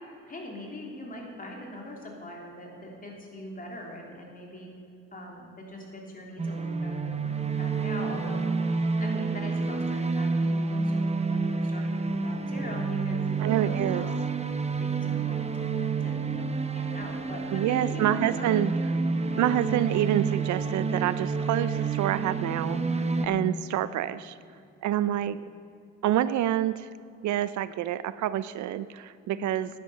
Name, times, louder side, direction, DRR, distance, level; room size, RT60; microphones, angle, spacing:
voice 1, 0.3-4.7 5.1-8.4 9.0-14.2 14.8-15.5 16.0-18.8 19.3-19.6 23.0-23.3 25.0-25.1 29.3-29.5, left 1 dB, 30° left, -1 dB, 3.2 m, -42 dB
sound 1, 6.4-23.3, right 4 dB, 20° right, 0.9 m, -29 dB
voice 2, 13.4-14.1 17.5-18.7 19.4-24.4 24.8-25.4 26.0-26.9 27.2-29.7, right 12 dB, 70° right, 15 dB, 0.5 m, -27 dB
11.0 x 9.3 x 6.8 m, 2.6 s
cardioid pair, 90°, 30 cm